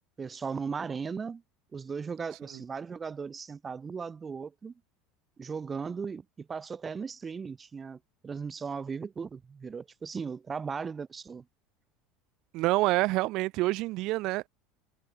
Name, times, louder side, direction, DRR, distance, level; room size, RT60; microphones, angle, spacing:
voice 1, 0.2-1.4 1.7-4.7 5.4-11.4, right 5 dB, 20° right, 3.6 m, -37 dB
voice 2, 12.5-14.5, right 20 dB, 60° right, 3.5 m, -27 dB
supercardioid pair, 125°, 0 cm